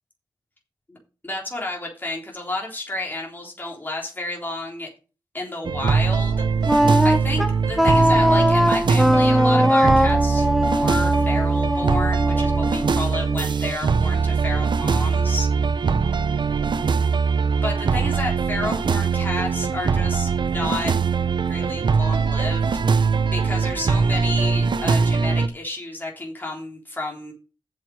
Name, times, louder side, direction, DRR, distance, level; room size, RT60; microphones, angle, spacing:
voice 1, 1.2-4.9 5.3-10.5 10.8-15.5 17.6-20.9 21.5-22.7 23.3-27.3, left 2 dB, 25° left, -1 dB, 3.6 m, -31 dB
sound 1, 5.6-25.5, right 5 dB, 70° right, 0.9 m, -21 dB
Wind instrument woodwind instrument, 6.6-13.6, equal, ahead, 1.1 m, -20 dB
7.6 x 6.6 x 6.4 m, 0.33 s
cardioid pair, 70°, 8 cm